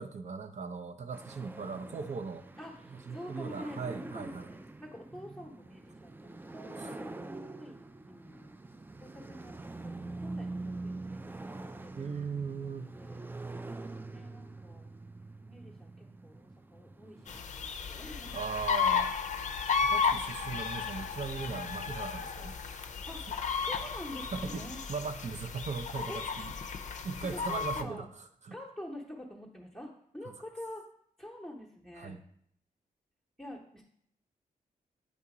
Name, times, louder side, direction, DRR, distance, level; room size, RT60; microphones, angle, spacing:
voice 1, 0.0-2.5 2.9-4.5 6.8-6.9 12.0-12.9 18.3-19.1 19.8-22.6 24.3-26.5 27.0-28.1 28.4-28.5 32.0-32.2, right 5 dB, 50° right, 9 dB, 0.6 m, -38 dB
sound 1, 1.1-17.4, right 2 dB, 15° right, 0.3 m, -45 dB
voice 2, 2.6-8.6 9.0-12.2 12.6-13.2 14.1-14.9 15.4-18.4 23.1-23.3 23.6-24.8 26.1-26.5 27.2-28.1 28.5-30.8 31.2-32.2 33.4-33.8, left 1 dB, 5° left, -3 dB, 0.9 m, -47 dB
sound 2, 17.3-27.8, left 6 dB, 55° left, 0.5 m, -34 dB
8.3 x 2.8 x 4.8 m, 0.68 s
cardioid pair, 75°, 15 cm